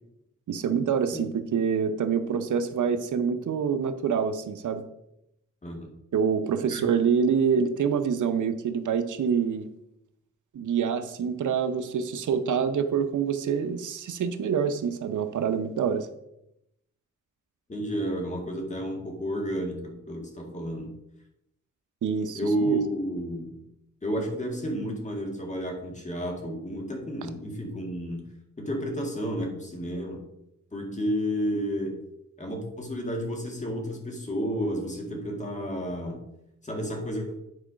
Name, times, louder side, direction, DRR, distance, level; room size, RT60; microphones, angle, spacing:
voice 1, 0.5-4.8 6.1-9.7 10.5-16.1 22.0-22.8, right 7 dB, 90° right, 9 dB, 0.7 m, -26 dB
voice 2, 17.7-20.9 22.4-23.5 24.0-28.2 28.6-30.3 30.7-32.0 32.4-36.2 36.6-37.4, equal, 25° left, 1 dB, 1.9 m, -31 dB
9.7 x 4.7 x 5.0 m, 0.83 s
wide cardioid pair, 125°, 29 cm